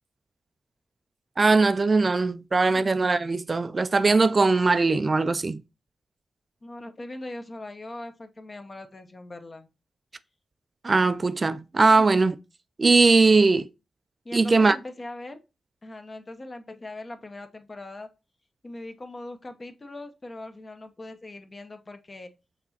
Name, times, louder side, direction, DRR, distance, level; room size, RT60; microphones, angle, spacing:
voice 1, 1.4-5.6 10.8-12.4 12.8-13.7 14.3-14.8, right 3 dB, 40° right, 0.3 m, -20 dB
voice 2, 6.6-9.7 11.5-11.6 11.9-12.0 14.2-15.4 15.8-18.1 18.6-22.3, left 2 dB, 35° left, 0.8 m, -41 dB
5.9 x 2.9 x 2.8 m
cardioid pair, 55°, 0 cm